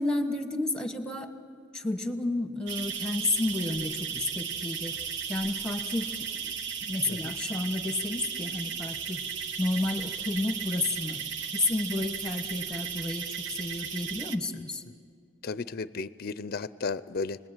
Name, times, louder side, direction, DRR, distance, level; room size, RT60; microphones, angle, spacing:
voice 1, 0.0-1.3 1.7-5.0 5.3-6.5 6.8-9.2 9.6-11.2 11.5-14.8, left 2 dB, 5° left, 7 dB, 1.4 m, -31 dB
sound 1, 2.7-14.4, right 7 dB, 65° right, 1.0 m, -35 dB
voice 2, 15.4-17.4, left 4 dB, 50° left, 16 dB, 0.5 m, -34 dB
29.0 x 20.0 x 9.0 m, 2.4 s
head